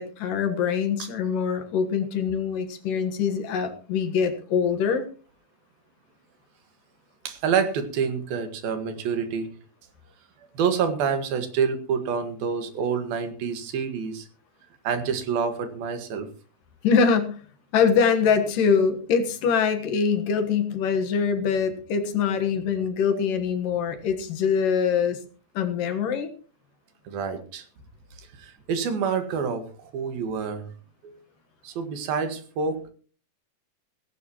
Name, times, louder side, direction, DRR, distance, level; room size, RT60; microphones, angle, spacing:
voice 1, 0.0-5.0 16.8-17.4 17.7-25.2 25.5-26.3, left 6 dB, 70° left, 8 dB, 2.9 m, -23 dB
voice 2, 7.3-9.5 10.6-14.3 14.9-16.3 27.1-27.7 28.2-30.7 31.0-31.2 31.6-32.9, right 6 dB, 85° right, 8 dB, 3.6 m, -27 dB
17.0 x 16.0 x 3.0 m, 0.39 s
omnidirectional pair, 4.1 m